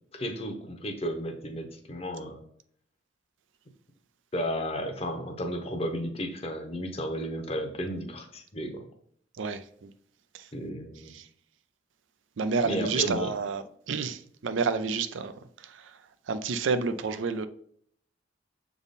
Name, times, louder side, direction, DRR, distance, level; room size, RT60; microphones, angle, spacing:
voice 1, 0.1-2.4 4.3-8.9 10.5-11.1 12.6-13.3, equal, 30° left, 0.8 m, -33 dB
voice 2, 9.4-9.9 10.3-10.5 11.1-11.2 12.4-15.3 15.6-15.9 16.3-17.5, right 4 dB, 90° right, 0.5 m, -30 dB
7.1 x 3.6 x 4.1 m
head